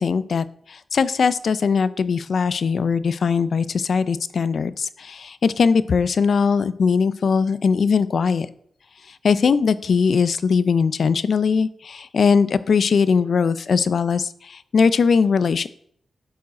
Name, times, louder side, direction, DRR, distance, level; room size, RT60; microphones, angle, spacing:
voice 1, 0.0-8.5 9.2-15.7, left 5 dB, 65° left, 15 dB, 0.4 m, -20 dB
11.0 x 4.7 x 4.1 m, 0.65 s
wide cardioid pair, 95°, 0 cm